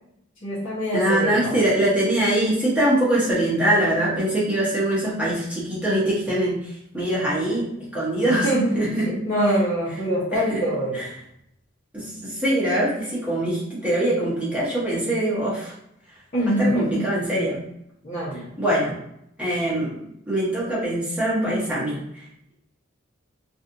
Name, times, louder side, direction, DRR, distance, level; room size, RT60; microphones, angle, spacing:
voice 1, 0.4-1.6 8.2-8.7 9.0-11.0 16.3-17.1 18.0-18.5, equal, 40° left, -11 dB, 1.1 m, -24 dB
voice 2, 0.9-6.6 6.9-8.5 8.7-9.1 10.3-10.6 10.9-11.0 11.9-15.7 16.6-17.6 18.6-18.9 19.4-20.0 20.3-22.0, right 1 dB, 5° right, -9 dB, 1.2 m, -23 dB
3.3 x 2.6 x 2.6 m, 0.76 s
head